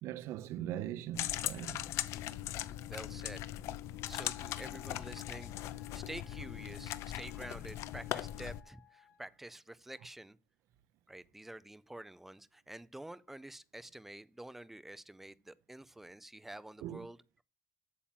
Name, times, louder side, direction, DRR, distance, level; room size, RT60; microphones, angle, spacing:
voice 1, 0.0-1.8 16.8-17.1, right 12 dB, 75° right, 0.5 m, -40 dB
sound 1, 1.2-8.6, left 13 dB, 75° left, 0.7 m, -39 dB
voice 2, 2.8-3.5 4.1-10.4 11.1-17.4, right 1 dB, 5° right, 0.4 m, -49 dB
Wind instrument woodwind instrument, 4.1-9.3, left 11 dB, 55° left, 2.4 m, -60 dB
8.6 x 7.3 x 7.3 m
cardioid pair, 165°, 5 cm